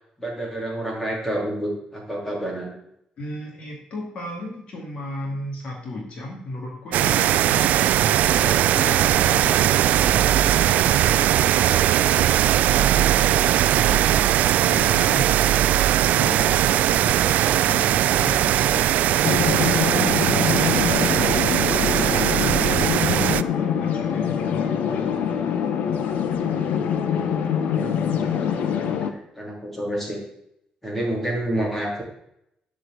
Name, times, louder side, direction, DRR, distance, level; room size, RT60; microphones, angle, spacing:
voice 1, 0.2-2.7 27.7-28.0 28.3-30.2 30.8-32.0, right 1 dB, 5° left, -2 dB, 3.1 m, -29 dB
voice 2, 3.2-25.4, left 2 dB, 45° left, 0 dB, 2.3 m, -36 dB
sound 1, 6.9-23.4, right 12 dB, 80° right, 0.3 m, -19 dB
sound 2, 19.2-29.1, left 8 dB, 80° left, 1.1 m, -24 dB
11.5 x 4.9 x 7.8 m, 0.78 s
cardioid pair, 170°, 3 cm